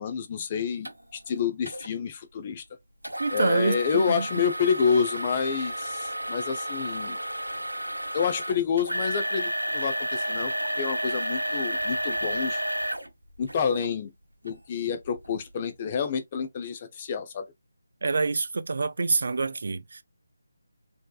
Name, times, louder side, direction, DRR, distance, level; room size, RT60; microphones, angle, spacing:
voice 1, 0.0-2.6 3.3-7.2 8.1-12.6 13.4-14.1 14.4-17.5, left 6 dB, 25° left, 0.6 m, -28 dB
sound 1, 0.8-0.9 1.7-1.9 3.0-13.9 14.5-14.6 15.2-15.3, right 1 dB, 90° right, 0.8 m, -31 dB
voice 2, 3.2-4.3 18.0-20.0, right 3 dB, 55° right, 0.4 m, -26 dB
4.3 x 2.9 x 2.3 m
figure-of-eight pair, 155°, 0 cm